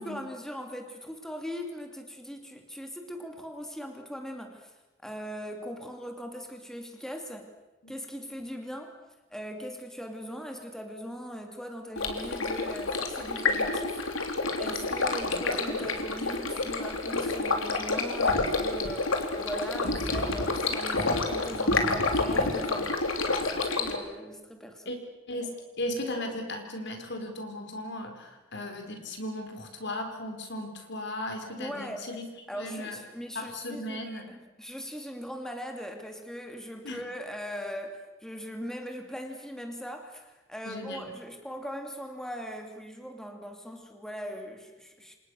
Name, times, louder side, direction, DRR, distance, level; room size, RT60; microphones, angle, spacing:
voice 1, 0.0-4.7 5.0-7.5 7.9-8.9 9.3-14.1 14.6-19.1 19.4-23.0 23.5-25.0 31.6-32.1 32.5-45.1, equal, 5° left, 3 dB, 2.6 m, -40 dB
Stream, 12.0-24.0, left 3 dB, 85° left, 3.4 m, -28 dB
voice 2, 25.8-32.3 32.5-33.0 33.3-34.3 36.8-37.1 40.6-41.1, left 1 dB, 60° left, 4 dB, 4.6 m, -36 dB
29.0 x 26.5 x 6.5 m, 1.1 s
head